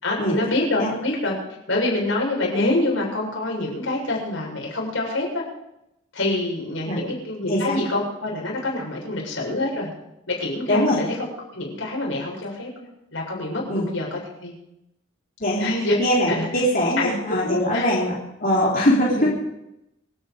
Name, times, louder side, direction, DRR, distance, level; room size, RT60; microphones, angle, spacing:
voice 1, 0.0-1.4 1.7-5.5 6.1-9.9 10.3-11.1 11.5-14.5 15.6-16.0 16.3-16.5 17.0-17.9 19.1-19.3, left 2 dB, 85° left, -2 dB, 7.3 m, -26 dB
voice 2, 10.7-11.0 13.7-13.9 15.4-15.7 16.0-18.1 18.4-19.4, equal, 45° left, -5 dB, 3.9 m, -21 dB
27.0 x 9.4 x 5.3 m, 0.86 s
head